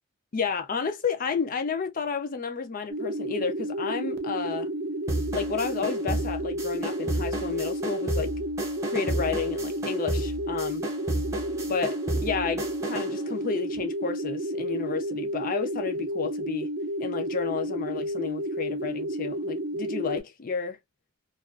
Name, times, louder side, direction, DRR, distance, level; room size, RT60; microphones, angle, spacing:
voice 1, 0.3-4.7 5.3-8.3 8.9-10.9 11.7-16.7 17.0-20.8, left 5 dB, 40° left, 0.5 m, -31 dB
sound 1, 2.9-20.2, equal, 45° right, 0.4 m, -31 dB
sound 2, 5.1-13.2, right 1 dB, 15° right, 0.7 m, -33 dB
2.4 x 2.3 x 2.3 m
head